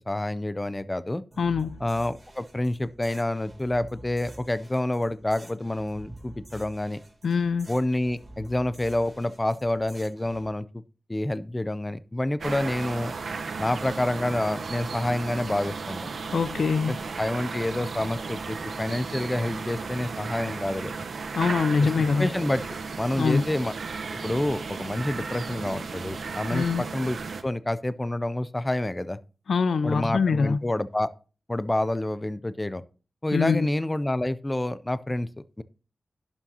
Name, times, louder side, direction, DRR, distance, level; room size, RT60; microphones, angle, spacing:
voice 1, 0.0-1.2 1.8-7.0 7.7-10.8 11.1-13.1 13.6-16.1 16.8-20.9 21.8-21.9 22.2-22.6 23.0-23.7 24.2-27.2 27.4-29.2 29.8-31.1 31.5-32.8 33.2-35.3 35.6-35.7, left 1 dB, 15° left, 0.4 m, -28 dB
sound 1, 1.3-10.5, right 1 dB, 20° right, 3.9 m, -47 dB
voice 2, 1.4-1.8 7.2-7.7 16.3-17.0 21.3-22.3 23.2-23.4 26.5-26.9 29.5-30.6 33.3-33.7, left 5 dB, 75° left, 0.4 m, -24 dB
sound 2, 12.4-27.4, right 4 dB, 70° right, 0.9 m, -35 dB
11.5 x 7.2 x 2.8 m
wide cardioid pair, 125°, 0 cm